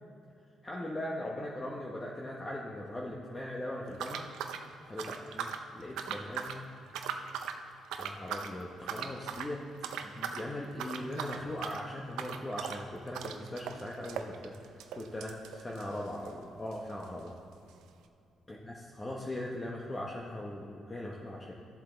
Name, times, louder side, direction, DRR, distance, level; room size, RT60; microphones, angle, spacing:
voice 1, 0.6-4.3 4.9-6.7 8.0-9.6 10.0-14.5 15.0-17.3 18.5-21.5, left 1 dB, 20° left, -3 dB, 1.0 m, -40 dB
sound 1, 3.9-5.7 6.0-6.6 6.9-7.6 7.9-8.5 8.9-9.5 9.8-10.5 10.7-16.4 16.7-16.8 17.0-17.1 17.8-17.9, right 7 dB, 90° right, 0.6 m, -39 dB
13.5 x 7.4 x 4.0 m, 2.7 s
cardioid pair, 90°, 0 cm